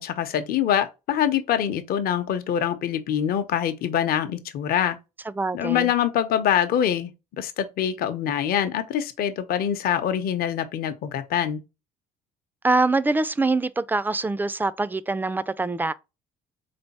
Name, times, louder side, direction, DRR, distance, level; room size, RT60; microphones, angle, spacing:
voice 1, 0.0-5.0 5.5-7.1 7.4-11.6, left 9 dB, 65° left, 0.7 m, -24 dB
voice 2, 5.3-5.9 12.6-15.9, right 3 dB, 10° right, 0.3 m, -24 dB
3.8 x 3.4 x 4.1 m
cardioid pair, 110°, 17 cm